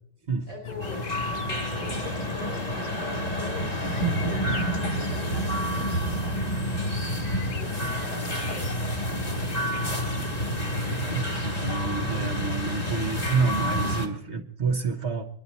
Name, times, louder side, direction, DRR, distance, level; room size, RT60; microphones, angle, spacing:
voice 1, 0.5-6.5 7.5-8.7, left 3 dB, 65° left, 2 dB, 3.5 m, -43 dB
sound 1, 0.6-13.7, left 7 dB, 85° left, 0.4 m, -40 dB
sound 2, 0.8-14.1, equal, 25° left, 1.6 m, -29 dB
voice 2, 11.1-15.3, right 4 dB, 50° right, 6 dB, 1.2 m, -29 dB
24.0 x 10.5 x 4.1 m, 0.70 s
omnidirectional pair, 1.6 m